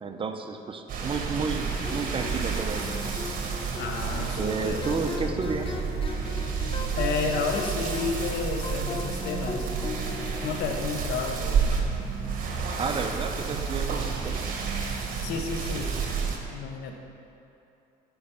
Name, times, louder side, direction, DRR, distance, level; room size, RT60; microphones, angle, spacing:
voice 1, 0.0-3.0 4.4-5.8 12.8-14.6, right 4 dB, 30° right, 5 dB, 0.8 m, -31 dB
sound 1, 0.9-16.4, right 5 dB, 55° right, 1.5 m, -30 dB
sound 2, 1.7-12.3, left 3 dB, 30° left, 0.9 m, -39 dB
voice 2, 3.8-5.3 6.9-9.9 10.4-11.9 15.2-15.9 16.5-17.0, left 5 dB, 85° left, 3 dB, 1.2 m, -32 dB
10.5 x 5.3 x 7.1 m, 2.8 s
cardioid pair, 110°, 17 cm